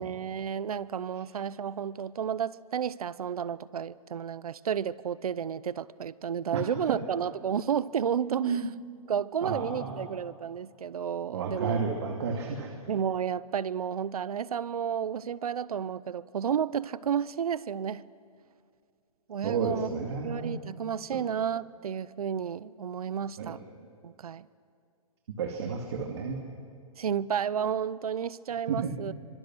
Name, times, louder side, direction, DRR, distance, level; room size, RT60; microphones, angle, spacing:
voice 1, 0.0-8.6 9.1-11.8 12.9-18.0 19.3-19.9 20.2-23.6 24.0-24.5 27.0-29.1, right 8 dB, 80° right, 19 dB, 0.8 m, -32 dB
voice 2, 8.4-8.7 9.4-10.1 11.3-12.7 19.4-20.5 21.1-21.2 23.4-23.6 25.4-26.4 28.7-28.9, right 5 dB, 45° right, 2 dB, 2.4 m, -31 dB
26.0 x 25.0 x 6.2 m, 2.4 s
hypercardioid pair, 170°, 19 cm